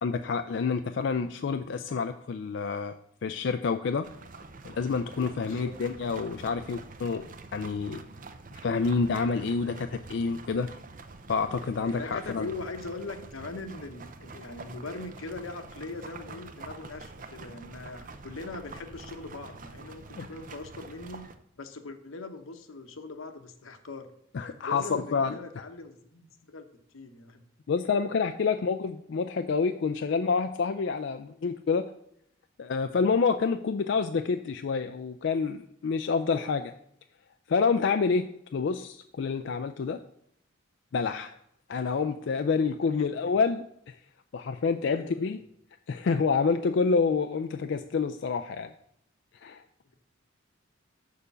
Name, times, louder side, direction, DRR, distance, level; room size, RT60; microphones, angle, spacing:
voice 1, 0.0-3.0 3.2-4.1 4.6-7.3 7.5-8.0 8.6-10.7 11.3-12.5 20.2-20.3 24.3-25.4 27.7-31.8 32.6-36.7 37.5-40.0 40.9-41.4 41.7-43.6 44.3-45.4 45.9-48.7 49.4-49.6, left 5 dB, 60° left, 8 dB, 0.4 m, -28 dB
sound 1, 4.0-21.3, right 3 dB, 40° right, 0.6 m, -46 dB
voice 2, 5.4-5.7 12.0-21.2 21.6-24.1 24.6-26.7 26.9-27.4 36.3-36.5 42.8-43.3 44.9-45.4, left 3 dB, 85° left, 7 dB, 1.0 m, -41 dB
6.7 x 5.1 x 6.8 m, 0.73 s
head